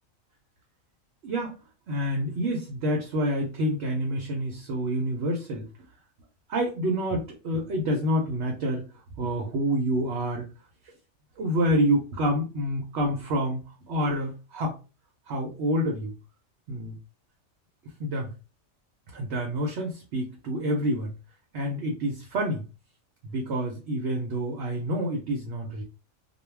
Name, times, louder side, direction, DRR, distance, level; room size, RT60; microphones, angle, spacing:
voice 1, 1.2-1.6 1.9-5.7 6.5-8.9 9.2-10.5 11.4-14.8 15.3-16.1 16.7-17.0 18.0-18.3 19.1-21.1 21.5-22.7 23.2-25.8, equal, 60° right, 1 dB, 0.8 m, -28 dB
2.3 x 2.3 x 3.1 m, 0.32 s
omnidirectional pair, 1.4 m